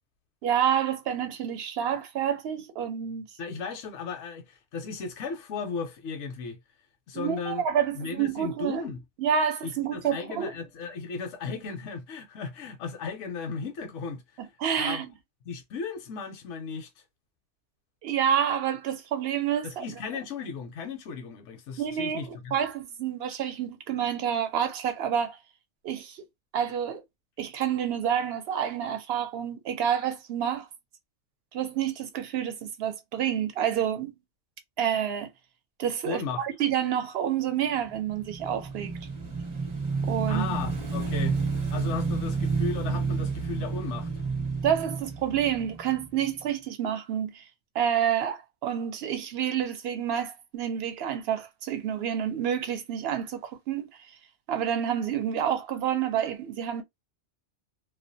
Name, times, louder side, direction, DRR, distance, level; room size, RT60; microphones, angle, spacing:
voice 1, 0.4-3.2 7.1-8.8 9.2-10.5 14.6-15.1 18.0-19.8 21.8-25.4 25.8-26.2 26.5-27.0 27.4-30.7 31.5-34.1 34.8-35.3 35.8-38.9 40.1-40.5 44.6-47.4 47.7-53.9 54.5-56.8, right 9 dB, 65° right, 0.8 m, -28 dB
voice 2, 3.4-6.6 7.1-7.7 8.0-9.0 9.6-14.4 14.8-15.1 15.5-16.9 19.6-22.6 36.0-36.4 40.3-41.4 41.7-44.2, left 5 dB, 80° left, 0.9 m, -35 dB
Motorcycle / Engine, 37.9-46.4, right 4 dB, 30° right, 0.7 m, -30 dB
2.4 x 2.1 x 2.6 m
omnidirectional pair, 1.2 m